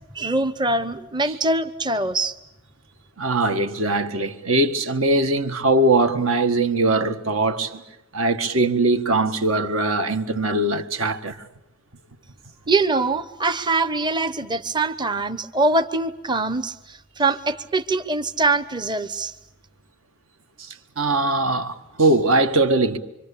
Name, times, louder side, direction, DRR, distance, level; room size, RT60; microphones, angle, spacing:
voice 1, 0.1-2.4 12.7-19.3, right 2 dB, 20° right, 0.9 m, -23 dB
voice 2, 3.2-7.8 8.1-11.4 20.6-23.0, right 2 dB, 65° right, 1.7 m, -21 dB
26.0 x 25.5 x 8.5 m
head